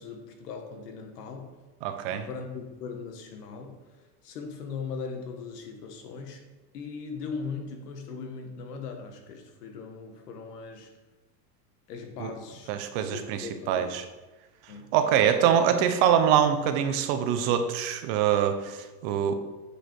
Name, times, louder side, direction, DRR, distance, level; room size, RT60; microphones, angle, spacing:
voice 1, 0.0-1.6 2.0-6.5 6.7-10.9 11.9-13.9 14.7-14.9 15.4-15.6, left 5 dB, 85° left, 4 dB, 1.6 m, -39 dB
voice 2, 1.8-2.3 12.2-12.3 12.7-14.0 14.9-19.3, right 9 dB, 45° right, 8 dB, 0.8 m, -24 dB
8.8 x 5.0 x 4.7 m, 1.2 s
supercardioid pair, 150°, 46 cm